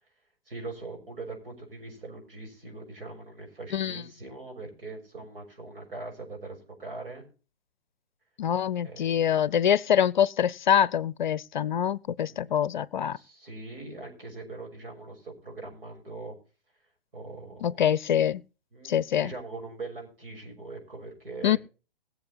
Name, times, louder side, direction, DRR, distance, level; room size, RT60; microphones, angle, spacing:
voice 1, 0.5-7.3 8.8-9.3 12.2-12.6 13.1-16.4 17.1-17.8 18.7-19.0 19.2-21.6, right 3 dB, 65° right, 6.7 m, -41 dB
voice 2, 3.7-4.0 8.4-13.2 17.6-18.4 18.8-19.3 21.4-21.6, left 9 dB, 50° left, 0.6 m, -25 dB
20.5 x 7.5 x 4.2 m
figure-of-eight pair, 120°, 30 cm